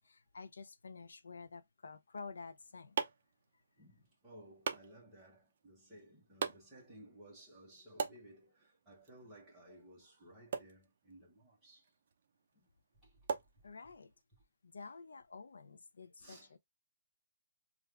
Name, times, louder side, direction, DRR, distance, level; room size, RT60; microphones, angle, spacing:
voice 1, 0.0-3.0 13.6-14.1 14.6-16.6, left 4 dB, 80° left, 0.5 m, -50 dB
sound 1, 2.3-14.2, right 6 dB, 35° right, 0.6 m, -45 dB
voice 2, 3.8-11.9 12.5-12.7 13.0-13.2 16.2-16.5, right 1 dB, 5° right, 1.2 m, -58 dB
3.4 x 2.4 x 3.2 m
hypercardioid pair, 175°, 0 cm